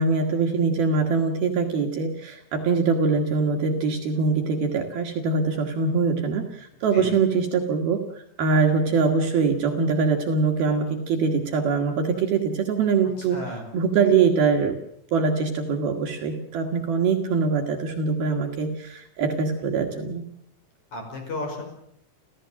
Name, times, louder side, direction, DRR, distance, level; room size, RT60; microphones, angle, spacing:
voice 1, 0.0-14.8 15.1-20.3, right 5 dB, 60° right, 3 dB, 3.1 m, -23 dB
voice 2, 13.2-13.7 20.9-21.6, left 2 dB, 40° left, 4 dB, 6.4 m, -33 dB
30.0 x 15.0 x 7.5 m, 0.72 s
omnidirectional pair, 5.5 m